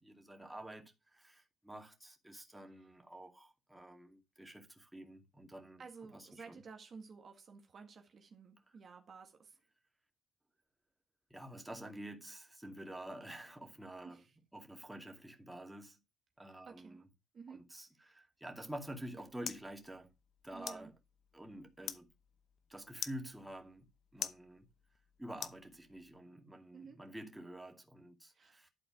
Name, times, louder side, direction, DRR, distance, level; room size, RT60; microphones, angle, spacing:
voice 1, 0.0-5.8 6.1-6.6 11.3-14.2 14.5-16.0 16.4-17.1 17.5-20.1 20.4-20.9 21.3-22.1 22.7-24.7 25.2-28.7, right 1 dB, 5° right, 2.4 m, -49 dB
voice 2, 5.8-9.6 14.0-14.3 16.7-17.0 17.3-17.6 20.5-20.9 26.7-27.0 28.3-28.7, right 5 dB, 50° right, 1.7 m, -53 dB
sound 1, 18.6-26.2, left 9 dB, 65° left, 0.8 m, -48 dB
11.5 x 4.2 x 5.9 m
cardioid pair, 90°, 0 cm